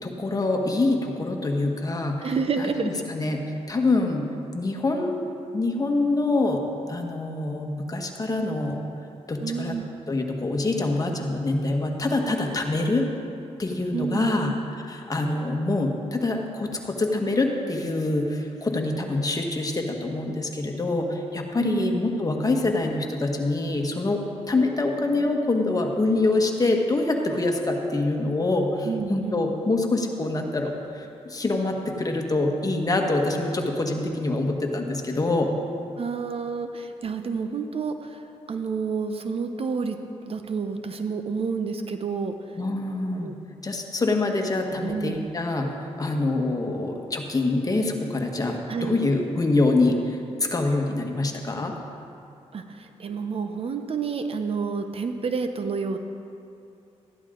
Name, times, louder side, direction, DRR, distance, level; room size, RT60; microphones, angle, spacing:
voice 1, 0.0-2.3 2.6-3.4 3.7-4.3 4.5-5.2 5.5-6.6 6.9-8.8 9.3-9.8 10.1-13.1 13.6-14.5 14.9-24.2 24.5-35.5 42.6-43.3 43.6-51.7, left 2 dB, 30° left, 2 dB, 1.4 m, -25 dB
voice 2, 2.2-3.0 9.4-10.0 13.9-14.6 21.6-22.0 28.8-29.5 36.0-40.0 40.3-42.3 43.1-43.3 44.8-45.2 48.7-49.0 52.5-56.0, right 5 dB, 55° right, 7 dB, 0.7 m, -29 dB
13.0 x 10.5 x 3.8 m, 2.6 s
cardioid pair, 75°, 12 cm